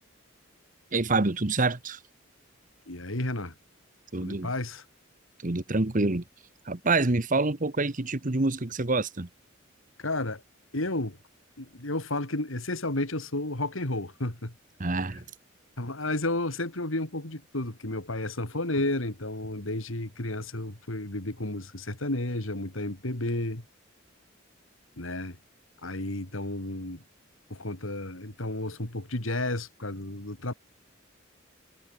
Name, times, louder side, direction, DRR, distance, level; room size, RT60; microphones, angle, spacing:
voice 1, 0.9-2.0 4.1-4.5 5.4-6.2 6.6-9.3 14.8-15.2, right 3 dB, 40° right, 1.2 m, -26 dB
voice 2, 2.9-3.5 4.2-4.8 10.0-10.4 10.7-11.2 11.6-14.5 15.8-23.6 25.0-25.4 25.8-27.0 27.5-30.5, left 2 dB, 85° left, 3.5 m, -32 dB
head